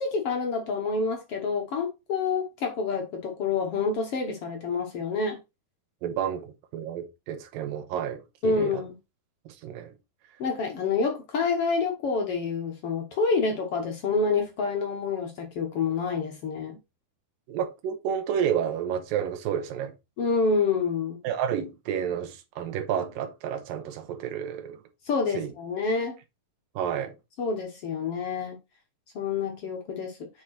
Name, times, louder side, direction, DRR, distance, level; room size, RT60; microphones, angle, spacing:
voice 1, 0.0-5.4 8.4-8.9 10.4-16.8 20.2-21.2 25.1-26.2 27.4-28.6 29.1-30.3, left 4 dB, 65° left, 1.4 m, -27 dB
voice 2, 6.0-8.8 9.5-9.9 17.5-19.9 21.2-24.8 25.3-25.5 26.8-27.1, right 8 dB, 75° right, 2.6 m, -30 dB
7.3 x 4.9 x 4.2 m
omnidirectional pair, 4.4 m